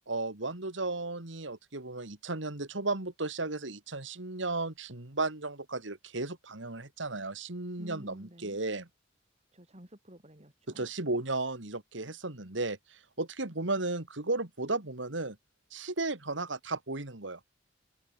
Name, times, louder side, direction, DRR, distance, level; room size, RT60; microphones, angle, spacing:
voice 1, 0.1-8.9 10.8-15.4 15.7-17.5, right 2 dB, 80° right, 2.7 m, -34 dB
voice 2, 7.8-8.6 9.5-10.9, equal, 35° right, 6.3 m, -50 dB
head